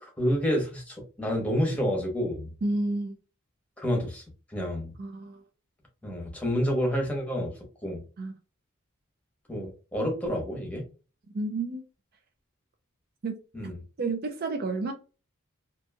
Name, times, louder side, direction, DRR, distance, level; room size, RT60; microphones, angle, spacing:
voice 1, 0.0-2.5 3.8-4.2 4.5-4.9 6.0-8.0 9.5-10.9 13.5-13.7, equal, 5° left, 1.0 m, -29 dB
voice 2, 2.6-3.2 5.0-5.4 8.2-8.3 11.3-11.8 13.2-13.3 14.0-14.9, right 3 dB, 45° right, 0.4 m, -30 dB
2.9 x 2.5 x 2.3 m
head